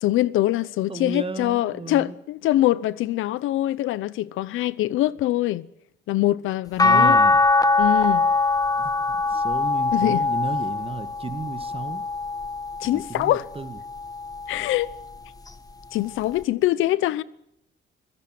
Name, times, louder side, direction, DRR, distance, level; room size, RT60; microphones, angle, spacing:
voice 1, 0.0-5.7 6.1-7.2 7.8-8.3 9.9-10.2 12.8-13.4 14.5-14.9 15.9-17.2, left 15 dB, 90° left, 0.8 m, -23 dB
voice 2, 0.9-2.2 6.8-7.4 8.8-12.0 12.8-13.8, right 4 dB, 30° right, 2.0 m, -33 dB
sound 1, 6.8-13.1 13.7-15.0 16.4-16.5, left 3 dB, 20° left, 1.4 m, -22 dB
25.5 x 16.5 x 7.6 m
cardioid pair, 90°, 20 cm